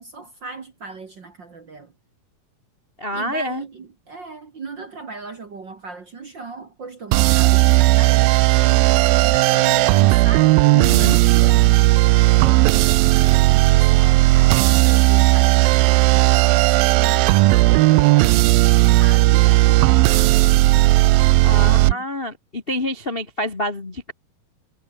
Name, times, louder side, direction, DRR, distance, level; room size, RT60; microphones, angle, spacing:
voice 1, 0.0-1.9 3.1-10.5 11.0-11.9 12.3-20.3 21.3-22.1, right 4 dB, 40° right, 1.8 m, -37 dB
voice 2, 3.0-3.6 10.7-11.2 21.4-24.1, left 1 dB, 30° left, 1.1 m, -27 dB
sound 1, 7.1-21.9, right 19 dB, 85° right, 2.5 m, -15 dB
omnidirectional pair, 4.1 m